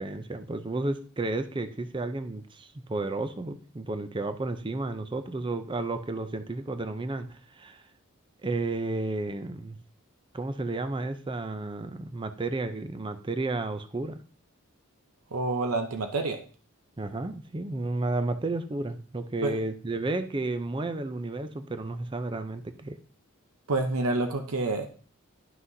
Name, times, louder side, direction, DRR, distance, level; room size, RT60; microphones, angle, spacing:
voice 1, 0.0-7.8 8.4-9.8 10.3-14.2 17.0-23.0, right 2 dB, 20° right, 10 dB, 0.5 m, -32 dB
voice 2, 15.3-16.4 19.4-19.6 23.7-24.9, right 2 dB, 80° right, 5 dB, 0.7 m, -28 dB
11.0 x 6.0 x 2.7 m, 0.40 s
head